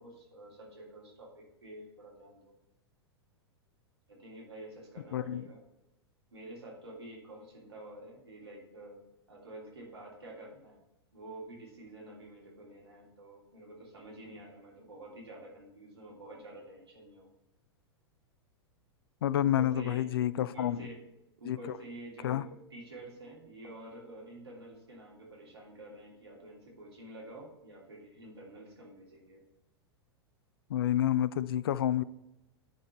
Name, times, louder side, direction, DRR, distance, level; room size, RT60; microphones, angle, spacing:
voice 1, 0.0-2.5 4.1-5.6 6.3-9.0 9.3-10.8 11.1-17.3 19.4-20.1 20.3-21.0 21.4-29.4, right 1 dB, 75° right, 3.0 m, -49 dB
voice 2, 5.1-5.4 19.2-20.8 21.4-21.6 22.2-22.4 30.7-32.0, left 11 dB, 60° left, 0.4 m, -29 dB
10.5 x 4.5 x 5.4 m
figure-of-eight pair, 95°, 14 cm